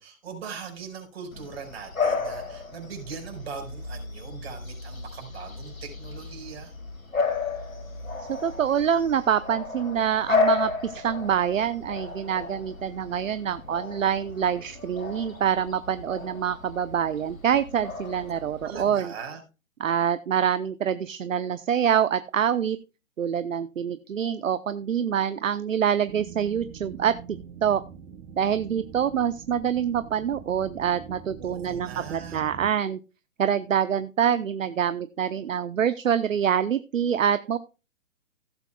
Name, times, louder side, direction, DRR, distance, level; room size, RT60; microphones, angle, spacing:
voice 1, 0.0-6.7 18.6-19.4 31.4-32.4, right 6 dB, 50° right, 4 dB, 5.0 m, -40 dB
Bark / Bird vocalization bird call bird song, 1.3-18.9, left 4 dB, 85° left, 2.5 m, -33 dB
voice 2, 8.2-19.1 19.8-22.8 23.2-27.1 27.6-27.8 28.4-33.0 33.4-37.6, right 8 dB, 70° right, 13 dB, 0.9 m, -26 dB
sound 1, 26.1-32.7, right 7 dB, 15° right, 0.8 m, -44 dB
16.0 x 8.2 x 2.3 m, 0.30 s
figure-of-eight pair, 135°, 40 cm